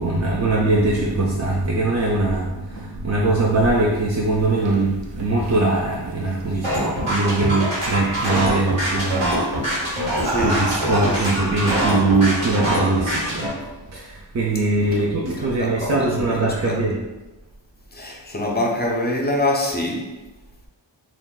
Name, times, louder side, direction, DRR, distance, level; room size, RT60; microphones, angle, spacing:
voice 1, 0.0-10.0 10.4-17.0, right 2 dB, 35° right, -4 dB, 0.4 m, -22 dB
sound 1, 4.2-7.0 7.4-7.8 9.1-9.3 9.9-12.0, right 2 dB, 65° right, 0.7 m, -32 dB
sound 2, 6.6-13.5, right 1 dB, 85° right, 1.4 m, -23 dB
voice 2, 10.2-10.6 11.0-11.3 14.8-16.8 17.9-20.1, left 1 dB, 20° left, 0 dB, 0.5 m, -26 dB
2.5 x 2.4 x 3.6 m, 1.1 s
wide cardioid pair, 85°, 47 cm